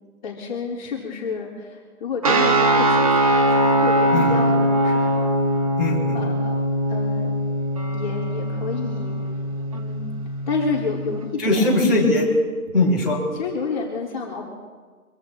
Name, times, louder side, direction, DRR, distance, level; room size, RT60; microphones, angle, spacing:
voice 1, 0.2-5.3 6.1-6.6 6.9-7.4 7.9-9.1 9.7-10.0 10.5-11.9 13.3-14.5, left 5 dB, 30° left, -4 dB, 3.6 m, -29 dB
sound 1, 2.2-11.2, right 1 dB, 25° right, 1.1 m, -21 dB
voice 2, 5.8-6.2 11.4-12.2 12.7-13.2, left 2 dB, ahead, -8 dB, 4.7 m, -20 dB
26.0 x 17.0 x 3.0 m, 1.5 s
figure-of-eight pair, 165°, 44 cm